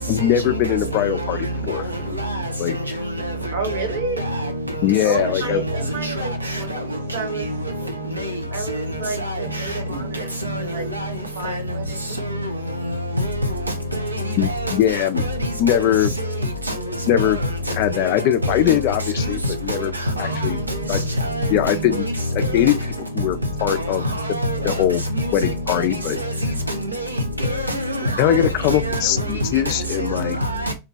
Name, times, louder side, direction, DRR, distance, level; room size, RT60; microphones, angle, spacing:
voice 1, 0.0-1.9 2.6-2.7 4.8-5.6 14.4-15.2 15.6-16.1 17.1-17.4 17.7-19.9 20.2-20.6 20.9-21.1 21.5-22.1 22.3-22.8 23.1-24.0 24.3-24.4 24.6-25.0 25.3-26.2 28.2-30.4, left 11 dB, 45° left, 0.3 m, -21 dB
voice 2, 3.5-4.2 5.0-7.6 8.5-10.9 11.3-12.2, right 3 dB, 65° right, 1.0 m, -30 dB
voice 3, 4.2-4.5 5.5-6.5 8.2-8.3 9.5-9.6 10.4-10.6 10.9-11.1 12.4-12.5 12.8-12.9 13.2-13.3 13.9-14.1 15.2-15.4 15.7-15.8 17.2-17.3 18.4-18.5 19.7-19.8 20.2-20.8 21.3-21.8 22.4-22.7 23.7-23.8 24.4-24.8 25.2-25.3 27.4-28.4 28.7-29.0 30.2-30.7, equal, 85° right, 0.5 m, -25 dB
2.5 x 2.1 x 2.4 m
figure-of-eight pair, 90°, 0 cm